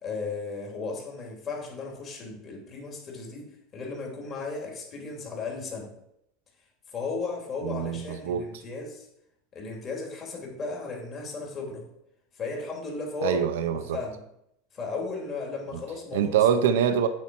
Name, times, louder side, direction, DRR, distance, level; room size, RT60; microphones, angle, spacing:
voice 1, 0.0-5.9 6.9-9.1 9.5-11.8 12.3-13.4 13.7-14.2 14.7-16.4, left 4 dB, 30° left, -1 dB, 2.5 m, -35 dB
voice 2, 7.6-8.5 13.2-14.0 16.1-17.1, right 8 dB, 90° right, 9 dB, 0.7 m, -24 dB
8.9 x 4.2 x 6.1 m, 0.78 s
supercardioid pair, 150°, 0 cm